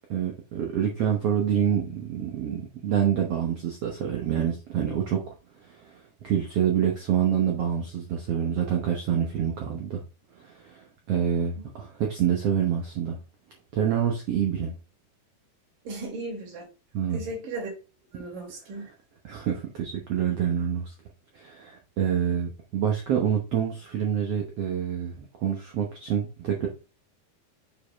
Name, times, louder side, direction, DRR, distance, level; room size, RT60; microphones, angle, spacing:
voice 1, 0.1-5.4 5.6-10.0 10.3-13.2 13.7-14.7 16.9-17.3 19.2-20.9 21.3-26.7, right 9 dB, 90° right, 1.3 m, -27 dB
voice 2, 15.9-16.7 17.1-17.7 18.1-18.8, right 2 dB, 65° right, 3.7 m, -36 dB
7.0 x 5.0 x 3.4 m
omnidirectional pair, 4.4 m